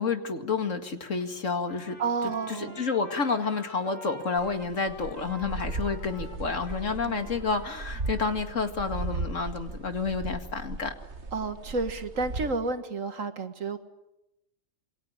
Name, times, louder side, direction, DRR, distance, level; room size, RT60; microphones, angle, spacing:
voice 1, 0.0-2.0 2.5-10.9, left 4 dB, 75° left, 7 dB, 2.5 m, -30 dB
Trumpet, 1.7-8.6, left 1 dB, 90° left, 6.3 m, -48 dB
voice 2, 2.0-2.8 6.9-7.2 11.3-13.8, right 4 dB, 80° right, 9 dB, 2.1 m, -31 dB
sound 1, 4.4-12.5, right 3 dB, 60° right, 1.9 m, -37 dB
27.5 x 23.5 x 8.9 m, 0.87 s
omnidirectional pair, 1.3 m